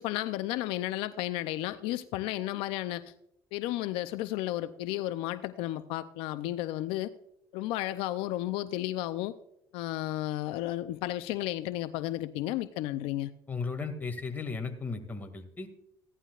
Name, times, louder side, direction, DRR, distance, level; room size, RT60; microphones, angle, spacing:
voice 1, 0.0-3.1 3.5-7.1 7.5-9.3 9.7-13.3, left 15 dB, 85° left, 12 dB, 0.5 m, -33 dB
voice 2, 13.5-15.7, left 4 dB, 20° left, 4 dB, 2.1 m, -35 dB
16.0 x 11.0 x 2.4 m, 0.77 s
cardioid pair, 100°, 9 cm